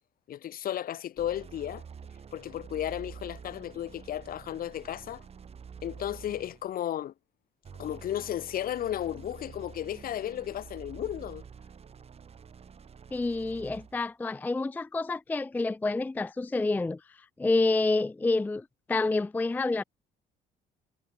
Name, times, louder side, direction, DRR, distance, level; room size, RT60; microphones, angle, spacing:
voice 1, 0.3-1.8 2.3-5.2 5.8-7.1 7.8-11.4, left 11 dB, 60° left, 2.5 m, -34 dB
sound 1, 1.2-6.8 7.6-14.0, right 6 dB, 35° right, 6.3 m, -48 dB
voice 2, 13.1-19.8, left 3 dB, 10° left, 0.4 m, -28 dB
cardioid pair, 110°, 17 cm